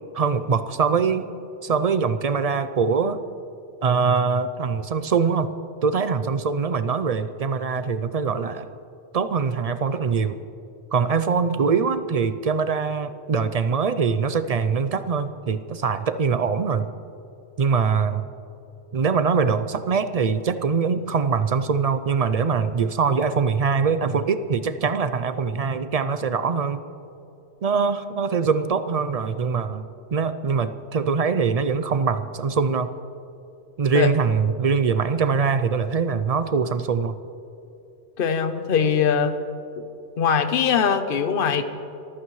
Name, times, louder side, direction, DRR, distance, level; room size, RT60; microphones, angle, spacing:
voice 1, 0.1-1.3 1.6-3.2 3.8-5.5 5.8-8.7 9.1-10.4 10.9-16.9 17.6-18.3 18.9-26.8 27.6-32.9 33.8-37.2, right 5 dB, 50° right, 11 dB, 0.4 m, -23 dB
voice 2, 38.2-39.4 40.2-41.6, left 7 dB, 55° left, 9 dB, 1.0 m, -21 dB
25.0 x 14.5 x 3.2 m, 2.7 s
omnidirectional pair, 1.2 m